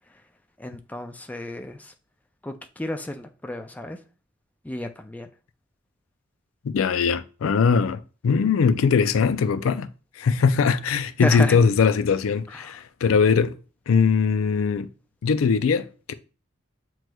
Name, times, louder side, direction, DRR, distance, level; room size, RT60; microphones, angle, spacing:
voice 1, 0.6-1.9 2.4-4.0 4.6-5.3 11.2-11.6 12.5-12.8, left 1 dB, 10° left, 0.3 m, -32 dB
voice 2, 6.6-9.9 10.2-13.6 13.9-14.9 15.2-16.1, left 5 dB, 90° left, 0.4 m, -21 dB
7.7 x 3.0 x 2.2 m
head